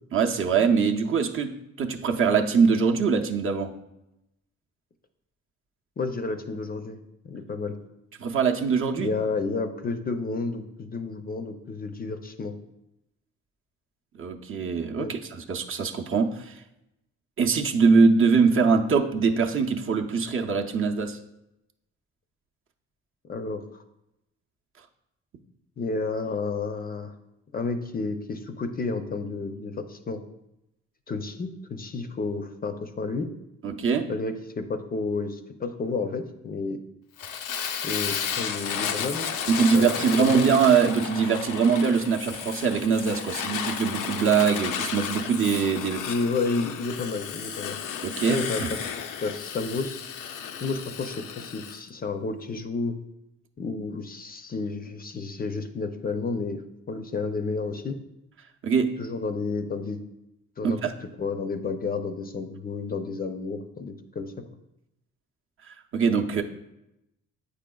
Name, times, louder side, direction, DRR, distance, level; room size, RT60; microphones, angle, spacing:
voice 1, 0.1-3.7 8.2-9.1 14.2-16.6 17.4-21.2 33.6-34.1 39.5-46.1 48.0-48.7 58.6-59.0 60.6-60.9 65.9-66.4, right 5 dB, 45° right, 2 dB, 0.6 m, -23 dB
voice 2, 6.0-7.0 7.2-7.8 9.0-12.5 15.0-15.1 23.3-23.8 25.8-27.1 27.5-30.2 31.1-33.3 34.1-36.8 37.8-39.3 39.7-39.9 40.2-40.4 46.1-47.8 48.3-48.8 49.2-50.0 50.6-53.0 53.6-56.6 56.9-58.0 59.0-60.0 60.6-64.3, left 3 dB, 30° left, 7 dB, 0.5 m, -31 dB
Fire, 37.2-51.8, left 7 dB, 90° left, 0.5 m, -33 dB
8.3 x 5.0 x 2.3 m, 0.87 s
cardioid pair, 90°, 30 cm